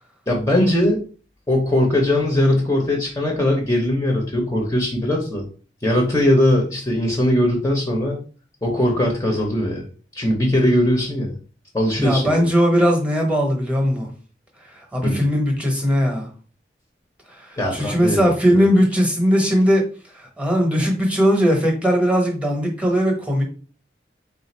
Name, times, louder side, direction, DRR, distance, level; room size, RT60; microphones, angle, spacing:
voice 1, 0.3-1.0 1.5-5.4 5.8-8.2 8.6-9.9 10.1-11.3 11.7-12.5 15.0-15.2 17.6-18.7, left 1 dB, 15° left, 0 dB, 0.7 m, -20 dB
voice 2, 12.0-14.1 14.9-16.3 17.4-19.9 20.1-23.4, equal, 5° right, 2 dB, 0.9 m, -19 dB
3.7 x 2.4 x 4.2 m, 0.39 s
head